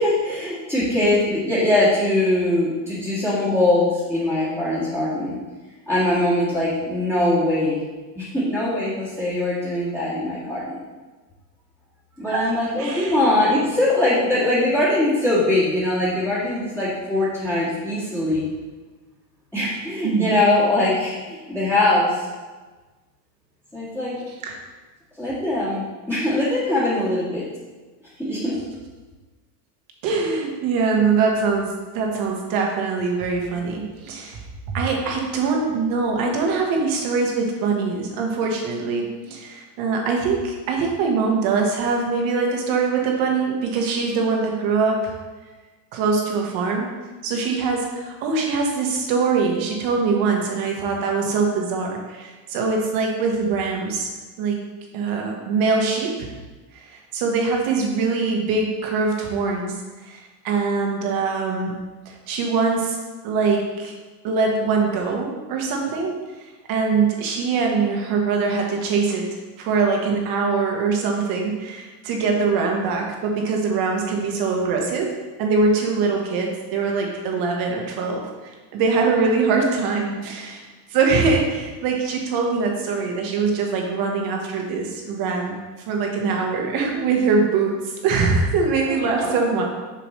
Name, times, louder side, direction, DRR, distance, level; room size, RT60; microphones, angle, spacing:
voice 1, 0.0-5.4 5.9-7.8 8.2-10.8 12.2-18.5 19.5-22.3 23.7-24.1 25.2-27.4 28.2-28.6 88.9-89.4, left 1 dB, 5° left, -12 dB, 1.9 m, -22 dB
voice 2, 12.8-13.2 20.0-20.3 24.4-24.5 30.0-31.7 31.9-34.4 34.7-45.1 45.9-46.9 47.2-54.1 54.4-54.6 54.9-56.3 56.7-59.7 60.0-61.7 62.0-63.0 63.2-63.9 64.2-66.1 66.7-69.2 69.6-75.1 75.4-80.7 80.9-85.6 85.9-87.7 88.0-89.6, right 4 dB, 45° right, 1 dB, 1.5 m, -23 dB
6.9 x 6.0 x 3.2 m, 1.3 s
supercardioid pair, 140°, 47 cm